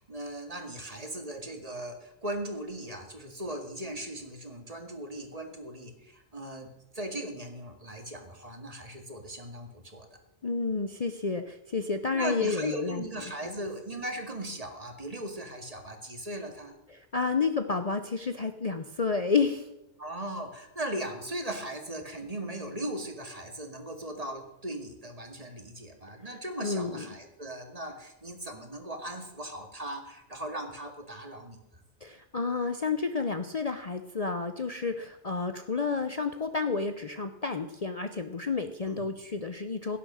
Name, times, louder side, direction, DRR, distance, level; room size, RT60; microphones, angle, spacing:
voice 1, 0.0-6.7 6.9-10.1 12.1-16.8 20.0-31.6 38.8-39.0, right 1 dB, 30° right, 5 dB, 2.2 m, -38 dB
voice 2, 10.4-13.0 16.9-19.7 26.6-27.1 32.0-40.0, left 4 dB, 35° left, 8 dB, 0.8 m, -30 dB
16.5 x 10.0 x 6.4 m, 0.91 s
omnidirectional pair, 1.2 m